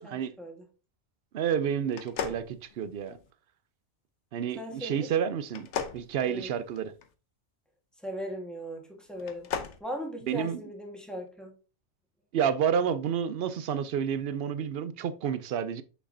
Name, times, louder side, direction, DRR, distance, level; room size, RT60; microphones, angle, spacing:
voice 1, 0.0-0.6 4.6-5.1 6.2-6.5 8.0-9.5 9.8-11.5, equal, ahead, 1.4 m, -38 dB
voice 2, 1.3-3.2 4.3-5.7 5.9-6.9 10.3-10.6 12.3-15.8, right 8 dB, 60° right, 0.7 m, -30 dB
sound 1, 1.9-3.3 5.5-7.1 9.1-9.8, left 7 dB, 75° left, 1.0 m, -36 dB
6.2 x 5.8 x 2.7 m
omnidirectional pair, 1.2 m